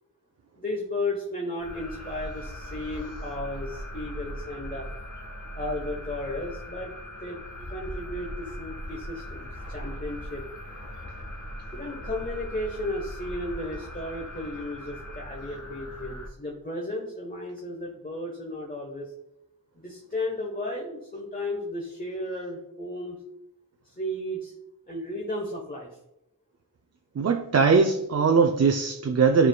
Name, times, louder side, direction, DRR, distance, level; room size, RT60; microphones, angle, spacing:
voice 1, 0.6-4.9 5.5-7.4 7.7-10.4 11.7-19.1 19.7-23.2 23.8-24.5 24.9-26.0, left 1 dB, 25° left, -1 dB, 1.0 m, -34 dB
sound 1, 1.6-16.3, equal, 55° left, 1.6 m, -39 dB
voice 2, 27.2-29.5, right 5 dB, 45° right, 4 dB, 0.5 m, -21 dB
9.4 x 4.7 x 2.2 m, 0.87 s
wide cardioid pair, 55°, 35 cm